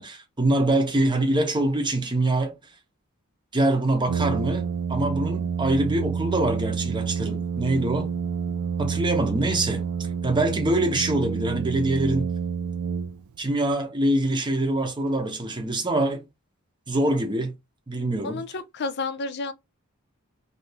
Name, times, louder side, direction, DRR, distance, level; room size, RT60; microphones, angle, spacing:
voice 1, 0.0-2.5 3.5-8.1 8.8-9.9 10.2-12.3 13.4-16.2 16.9-17.5 17.9-18.4, right 1 dB, 20° right, 0.7 m, -24 dB
Brass instrument, 4.1-13.5, right 6 dB, 70° right, 0.3 m, -28 dB
voice 2, 18.2-19.5, left 3 dB, 50° left, 0.5 m, -31 dB
2.7 x 2.5 x 3.3 m
head